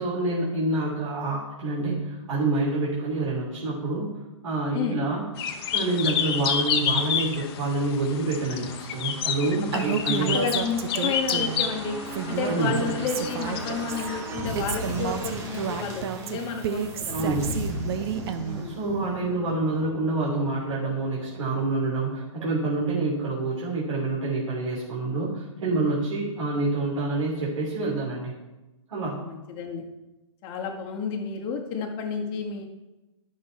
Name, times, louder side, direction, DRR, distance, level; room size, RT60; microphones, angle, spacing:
voice 1, 0.0-4.1 4.4-5.3 5.7-10.4 12.4-12.8 17.1-17.5 18.6-28.3 28.9-29.2, right 2 dB, 85° right, -7 dB, 2.9 m, -27 dB
sound 1, 5.4-14.2, left 8 dB, 50° left, 1.0 m, -30 dB
sound 2, 9.4-22.9 23.2-23.3, right 1 dB, 20° right, 1.4 m, -38 dB
Female speech woman speaking, 9.7-11.7 12.1-14.1 14.6-18.7, right 8 dB, 50° right, 0.8 m, -30 dB
voice 2, 10.2-12.0 12.3-17.2 18.4-18.8 29.0-29.8 30.4-32.6, left 5 dB, 30° left, 0 dB, 1.7 m, -31 dB
10.5 x 6.2 x 4.5 m, 1.0 s
hypercardioid pair, 135°, 16 cm